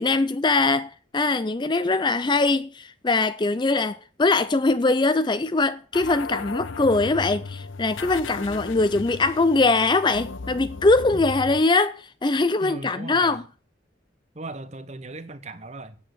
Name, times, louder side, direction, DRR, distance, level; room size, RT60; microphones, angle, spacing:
voice 1, 0.0-13.4, left 3 dB, 25° left, 0.5 m, -22 dB
sound 1, 5.9-11.6, left 4 dB, 85° left, 0.7 m, -36 dB
voice 2, 12.6-13.4 14.3-15.9, right 2 dB, 35° right, 1.1 m, -38 dB
8.9 x 8.2 x 8.2 m
head